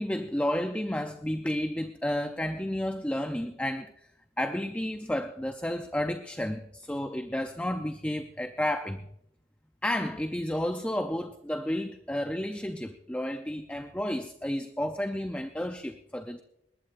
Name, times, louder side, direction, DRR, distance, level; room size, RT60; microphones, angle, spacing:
voice 1, 0.0-3.9 4.4-9.0 9.8-16.4, left 1 dB, 5° left, 0.5 m, -31 dB
20.5 x 19.0 x 2.5 m
head